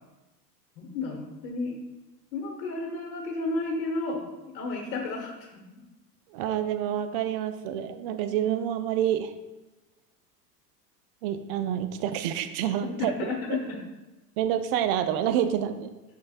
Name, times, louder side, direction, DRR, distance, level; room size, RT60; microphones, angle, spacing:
voice 1, 0.8-1.7 2.3-4.3 4.5-5.6 12.8-13.8, left 3 dB, 55° left, -1 dB, 1.4 m, -32 dB
voice 2, 6.3-9.3 11.2-13.1 13.5-13.6 14.4-15.9, right 10 dB, 35° right, 10 dB, 0.4 m, -28 dB
8.3 x 5.7 x 2.4 m, 1.1 s
figure-of-eight pair, 90°, 50 cm